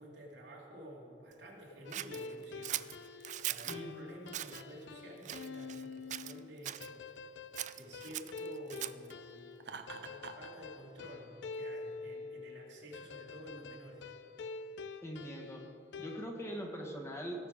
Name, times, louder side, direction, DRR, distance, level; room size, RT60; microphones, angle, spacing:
voice 1, 0.0-2.8 3.1-7.4 7.7-9.5 9.9-14.1, right 1 dB, 90° right, -3 dB, 2.5 m, -51 dB
sound 1, 1.8-16.3, left 4 dB, 85° left, 0.4 m, -47 dB
Scissors, 1.9-3.8 4.3-4.6 5.2-5.8 6.1-6.9 7.5-9.1, right 13 dB, 45° right, 0.3 m, -40 dB
voice 2, 3.7-4.0 15.0-15.6 16.0-17.5, equal, 15° left, 0 dB, 1.4 m, -42 dB
Laughter, 9.6-10.5, right 5 dB, 70° right, 0.7 m, -46 dB
17.5 x 6.6 x 4.9 m, 2.9 s
head